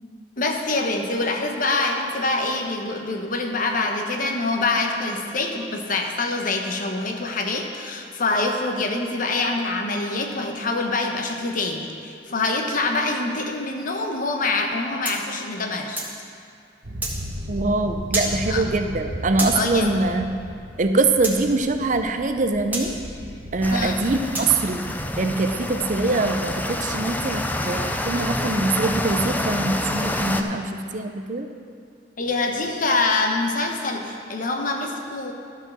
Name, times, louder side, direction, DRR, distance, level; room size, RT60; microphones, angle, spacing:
voice 1, 0.4-16.0 18.5-18.6 19.5-19.9 23.7-24.0 32.2-35.3, left 3 dB, 50° left, 3 dB, 1.0 m, -25 dB
sound 1, 15.0-16.2 17.0-17.2 18.1-18.3 19.4-19.6 21.2-21.4 22.7-22.9 24.3-24.5, right 2 dB, 10° right, 1.5 m, -28 dB
sound 2, 16.8-23.8, equal, 75° right, 1.2 m, -35 dB
voice 2, 17.5-20.3 20.8-23.0 23.5-24.9 25.2-31.5, right 3 dB, 45° right, 7 dB, 0.6 m, -23 dB
sound 3, 23.6-30.4, left 1 dB, 10° left, 0.5 m, -28 dB
13.0 x 5.5 x 6.2 m, 2.3 s
head